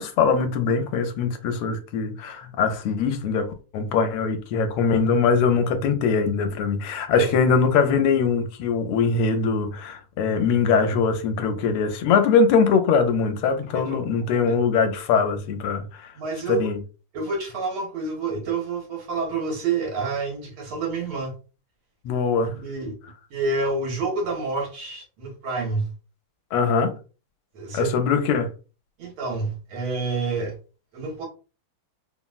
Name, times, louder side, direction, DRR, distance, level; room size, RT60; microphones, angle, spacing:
voice 1, 0.0-16.1 16.5-16.8 22.0-22.5 26.5-26.9 27.7-28.5, left 5 dB, 80° left, 1.5 m, -22 dB
voice 2, 16.1-16.7 17.1-21.3 22.5-22.9 23.3-25.9 27.5-27.9 29.0-30.5 30.9-31.2, right 3 dB, 75° right, 1.7 m, -28 dB
3.7 x 2.0 x 2.3 m
omnidirectional pair, 2.4 m